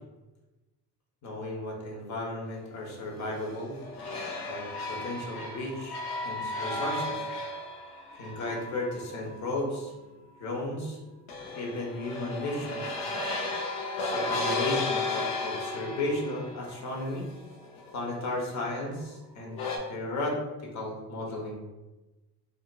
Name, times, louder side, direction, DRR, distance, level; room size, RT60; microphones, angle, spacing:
voice 1, 1.2-3.8 4.4-7.3 8.2-9.9 10.4-11.0 11.5-13.0 14.0-17.3 17.9-19.6 19.9-21.6, left 1 dB, 45° left, -1 dB, 1.0 m, -34 dB
sound 1, 3.1-9.8 11.3-18.9 19.5-19.8, left 2 dB, 70° left, 0.7 m, -34 dB
2.7 x 2.7 x 2.3 m, 1.1 s
supercardioid pair, 85°, 38 cm